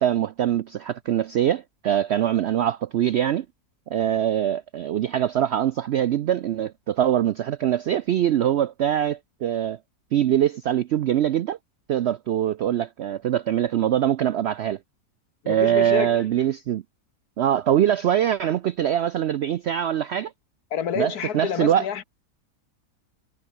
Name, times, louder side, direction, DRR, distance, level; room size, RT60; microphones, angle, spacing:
voice 1, 0.0-3.5 3.9-9.8 10.1-11.6 11.9-14.8 15.5-16.8 17.4-20.3 21.0-21.9, right 10 dB, 75° right, 0.6 m, -23 dB
voice 2, 15.4-16.2 20.7-22.0, left 8 dB, 75° left, 1.7 m, -28 dB
omnidirectional pair, 1.7 m